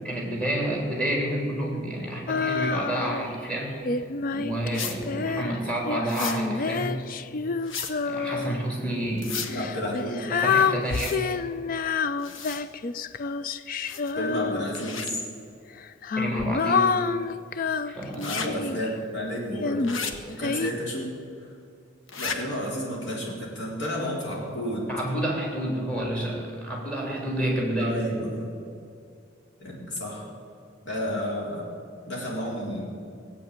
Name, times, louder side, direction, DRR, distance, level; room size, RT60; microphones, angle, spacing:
voice 1, 0.0-3.8 4.3-7.1 8.0-9.5 10.3-11.2 16.2-17.0 17.5-18.3 24.9-27.9, right 1 dB, 5° left, -2 dB, 3.6 m, -29 dB
Female singing, 2.3-3.3 3.9-8.7 9.5-15.0 15.8-18.9 19.6-20.7, left 5 dB, 45° left, 0.4 m, -28 dB
sound 1, 4.7-5.0 6.1-6.4 7.6-7.9 9.2-9.5 10.9-11.2 12.2-12.6 13.9-14.2 14.7-15.1 18.1-18.5 19.8-20.1 22.1-22.4, left 6 dB, 80° left, 1.2 m, -33 dB
voice 2, 9.4-10.3 14.1-15.2 18.2-19.9 20.2-21.1 22.2-24.9 27.8-28.5 29.6-30.3 30.8-31.7 32.1-32.9, equal, 60° left, -4 dB, 4.2 m, -31 dB
17.5 x 8.3 x 8.8 m, 2.3 s
head